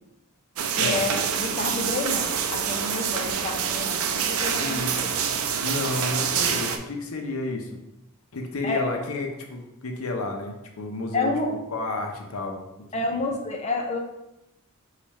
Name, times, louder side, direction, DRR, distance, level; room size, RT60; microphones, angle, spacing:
sound 1, 0.6-6.8, right 7 dB, 80° right, 0.4 m, -26 dB
voice 1, 0.7-5.1 8.6-8.9 11.1-11.5 12.9-14.0, left 3 dB, 30° left, 2 dB, 0.7 m, -29 dB
voice 2, 4.6-4.9 5.6-7.8 8.3-12.6, left 2 dB, 80° left, 3 dB, 0.7 m, -31 dB
4.7 x 2.4 x 4.1 m, 0.88 s
head